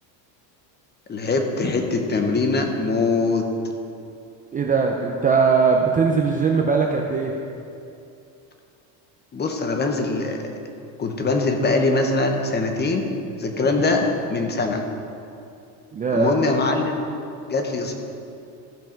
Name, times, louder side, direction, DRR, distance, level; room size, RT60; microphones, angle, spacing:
voice 1, 1.1-3.5 9.3-10.5 11.0-13.0 13.4-14.8 16.1-17.1 17.5-17.9, left 3 dB, 20° left, 4 dB, 1.0 m, -22 dB
voice 2, 4.5-7.4 15.9-16.3, right 5 dB, 15° right, 1 dB, 0.5 m, -20 dB
15.0 x 5.7 x 5.2 m, 2.6 s
cardioid pair, 140°, 50 cm